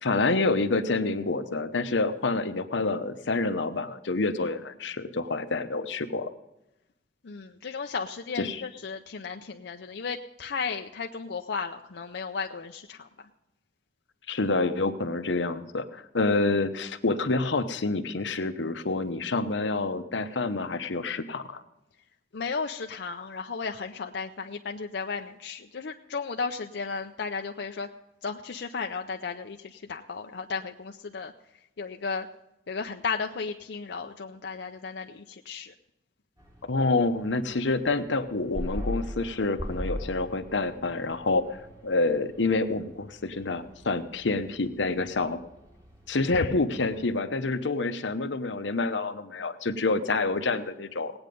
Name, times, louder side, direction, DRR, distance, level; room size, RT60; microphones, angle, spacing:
voice 1, 0.0-6.3 8.4-8.6 14.3-21.6 36.7-41.4 41.8-45.4 46.1-51.1, left 3 dB, 85° left, 9 dB, 0.9 m, -27 dB
voice 2, 7.2-13.1 22.3-27.9 28.2-31.3 31.8-32.3 32.7-35.7 46.3-46.5, left 5 dB, 65° left, 4 dB, 0.6 m, -34 dB
sound 1, 36.4-47.1, left 1 dB, 20° right, 2.1 m, -41 dB
18.5 x 8.9 x 5.3 m, 0.91 s
head